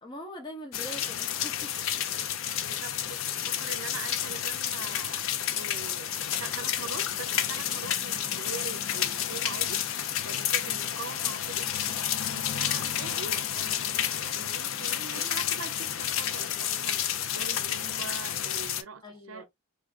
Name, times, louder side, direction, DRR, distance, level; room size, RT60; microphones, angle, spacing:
voice 1, 0.0-1.8 19.0-19.5, equal, 20° left, 0.5 m, -43 dB
sound 1, 0.7-18.8, left 10 dB, 80° left, 0.4 m, -30 dB
voice 2, 2.6-5.2 5.5-9.9 10.2-11.7 12.3-19.5, right 5 dB, 85° right, 0.5 m, -43 dB
3.3 x 2.3 x 2.4 m
head